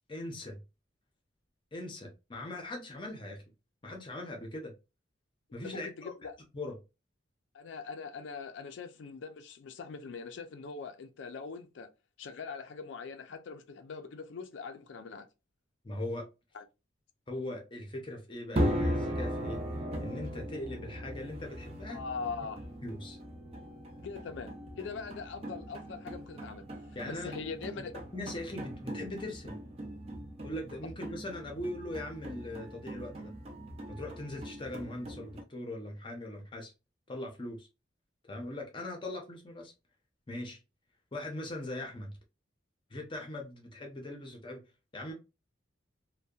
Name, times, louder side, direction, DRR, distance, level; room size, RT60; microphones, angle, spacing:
voice 1, 0.1-0.6 1.7-3.4 3.8-4.7 5.5-6.1 6.5-6.8 15.8-16.3 17.3-19.6 20.0-22.0 22.8-23.2 26.9-27.3 27.8-27.9 28.1-29.6 30.4-33.3 33.9-36.7 37.1-37.7 38.3-39.7 40.3-40.6 41.1-42.2 42.9-44.6 44.9-45.1, left 1 dB, 25° left, 0.6 m, -40 dB
voice 2, 5.6-6.3 7.5-11.9 12.2-15.3 16.5-16.6 21.9-22.6 24.0-26.7 27.1-27.9, left 5 dB, 70° left, 0.4 m, -42 dB
sound 1, 18.5-35.4, equal, 30° right, 0.4 m, -38 dB
2.7 x 2.1 x 2.3 m
head